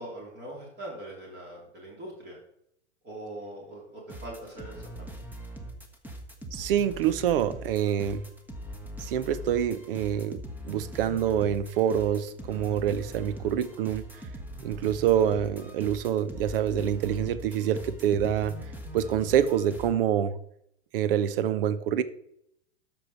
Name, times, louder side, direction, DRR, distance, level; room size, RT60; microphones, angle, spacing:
voice 1, 0.0-2.4 3.0-4.8, right 1 dB, 30° right, -2 dB, 3.6 m, -41 dB
sound 1, 4.1-19.9, equal, 5° right, 1.3 m, -42 dB
voice 2, 6.5-8.2 9.0-10.4 10.6-14.0 14.6-18.6 18.9-20.4 20.9-22.0, right 9 dB, 50° right, 15 dB, 0.8 m, -26 dB
13.0 x 5.5 x 4.4 m, 0.74 s
figure-of-eight pair, 100°, 36 cm